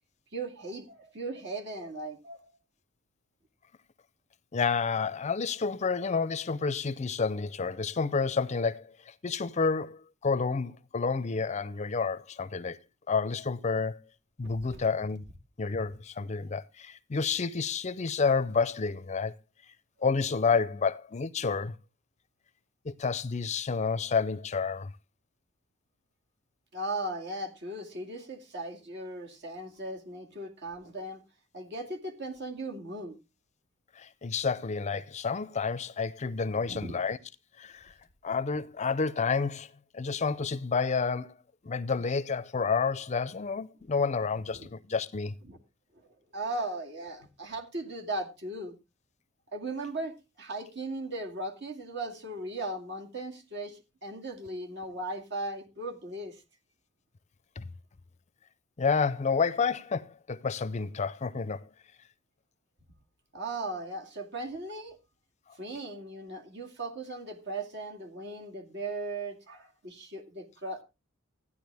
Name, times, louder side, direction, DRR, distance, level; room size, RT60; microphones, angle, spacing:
voice 1, 0.3-2.5 14.4-14.8 26.7-31.2 31.5-33.2 36.5-37.0 44.5-44.7 45.5-45.6 46.3-48.8 49.5-56.4 63.3-65.0 65.6-70.8, right 2 dB, 60° right, 2.3 m, -37 dB
voice 2, 4.5-12.8 13.1-14.0 14.4-15.2 15.6-19.3 20.0-21.8 22.8-24.9 34.0-37.2 37.6-37.9 38.2-39.7 39.9-41.3 41.6-45.3 57.6-57.7 58.8-61.6, left 5 dB, 35° left, 0.5 m, -29 dB
14.0 x 9.9 x 3.4 m
head